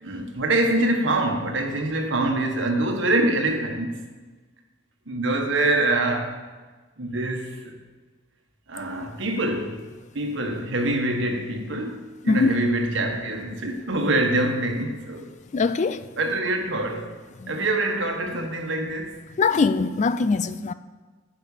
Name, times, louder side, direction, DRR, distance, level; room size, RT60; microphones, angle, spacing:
voice 1, 0.0-3.9 5.1-6.4 7.0-7.8 8.7-15.3 16.2-17.1 17.5-19.2, right 2 dB, 65° right, 1.5 m, -25 dB
voice 2, 15.5-16.0 17.4-17.6 19.4-20.7, left 4 dB, 35° left, 0.4 m, -22 dB
9.8 x 6.0 x 8.5 m
head